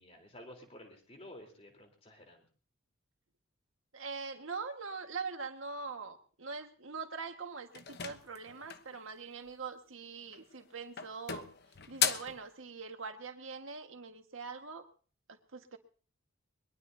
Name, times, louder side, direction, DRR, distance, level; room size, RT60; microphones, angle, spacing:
voice 1, 0.0-2.5, left 1 dB, 30° left, 3 dB, 3.8 m, -52 dB
voice 2, 3.9-11.5 11.9-14.9 15.3-15.8, right 4 dB, 70° right, 5 dB, 1.7 m, -43 dB
sound 1, 7.7-9.0 10.2-10.6 11.0-12.4, left 8 dB, 50° left, 1.0 m, -35 dB
22.0 x 22.0 x 2.8 m, 0.41 s
head